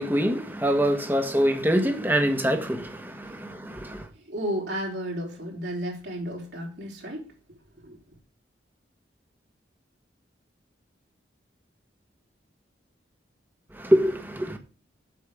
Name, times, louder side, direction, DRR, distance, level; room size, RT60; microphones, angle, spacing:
voice 1, 0.0-4.0 13.7-14.6, equal, 10° right, 1.4 m, -24 dB
voice 2, 4.2-7.2 7.8-8.0, equal, 65° right, 4.2 m, -33 dB
8.4 x 6.6 x 6.7 m
head